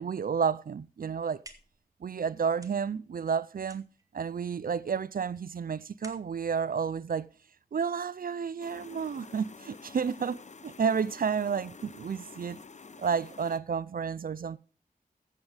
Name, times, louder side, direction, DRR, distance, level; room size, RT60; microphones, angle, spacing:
voice 1, 0.0-1.4 2.0-3.8 4.1-7.3 7.7-10.4 10.6-12.6 13.0-14.6, right 6 dB, 65° right, 0.4 m, -31 dB
sound 1, 1.1-7.9, right 1 dB, 20° right, 1.8 m, -56 dB
sound 2, 8.6-13.6, left 4 dB, 50° left, 0.8 m, -49 dB
15.0 x 8.1 x 3.4 m
wide cardioid pair, 80°, 16 cm